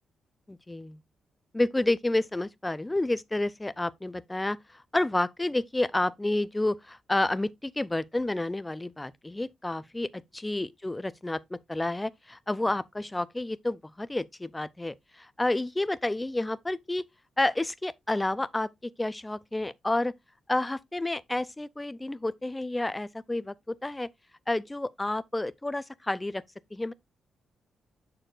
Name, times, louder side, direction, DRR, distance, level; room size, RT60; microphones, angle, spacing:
voice 1, 0.5-1.0 1.5-10.1 10.3-17.1 17.4-20.1 20.5-24.1 24.5-26.4 26.7-26.9, left 2 dB, 10° left, 0.4 m, -30 dB
7.8 x 6.7 x 2.4 m
cardioid pair, 115°, 0 cm